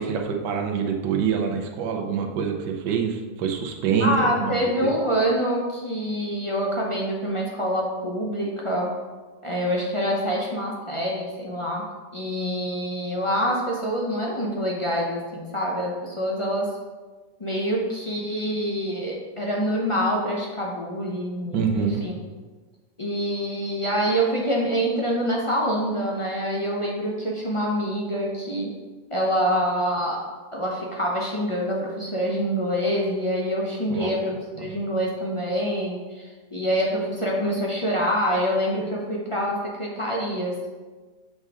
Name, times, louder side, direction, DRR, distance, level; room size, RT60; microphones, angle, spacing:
voice 1, 0.0-4.1 4.4-4.9 21.5-22.0 33.9-34.1 34.6-34.7, right 7 dB, 75° right, 3 dB, 1.4 m, -26 dB
voice 2, 4.0-8.9 9.4-11.8 12.1-16.7 17.4-22.1 23.0-28.7 29.1-30.2 30.5-40.7, equal, 45° left, -3 dB, 0.4 m, -26 dB
6.4 x 5.3 x 3.7 m, 1.3 s
omnidirectional pair, 1.9 m